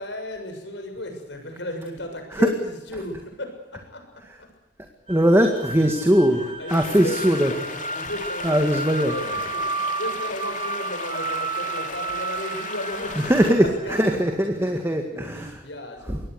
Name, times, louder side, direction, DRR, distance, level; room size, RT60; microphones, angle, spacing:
voice 1, 0.0-4.1 6.3-16.2, left 1 dB, 70° left, 4 dB, 7.0 m, -35 dB
voice 2, 5.1-7.5 8.4-9.1 13.3-15.6, equal, 15° right, 4 dB, 1.9 m, -20 dB
sound 1, 5.1-14.3, right 4 dB, 30° right, 1.8 m, -32 dB
sound 2, 6.7-13.5, left 5 dB, 45° left, 2.9 m, -36 dB
24.5 x 19.0 x 8.1 m, 0.99 s
head